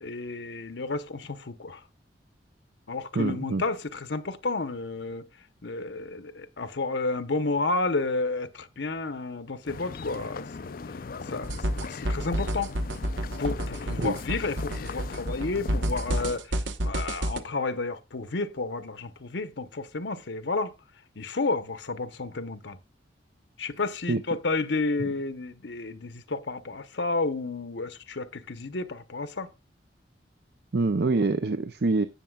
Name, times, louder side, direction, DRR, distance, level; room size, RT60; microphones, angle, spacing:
voice 1, 0.0-1.8 2.9-5.3 5.6-10.5 11.3-12.7 13.2-20.7 21.2-22.8 23.6-29.5, left 3 dB, 75° left, 1.0 m, -31 dB
voice 2, 3.1-3.6 14.0-14.2 24.1-24.2 30.7-32.1, right 3 dB, 60° right, 0.6 m, -25 dB
sound 1, 9.7-16.4, left 4 dB, 50° left, 0.5 m, -39 dB
sound 2, 11.4-17.4, equal, 90° right, 1.2 m, -30 dB
17.5 x 6.8 x 2.4 m
head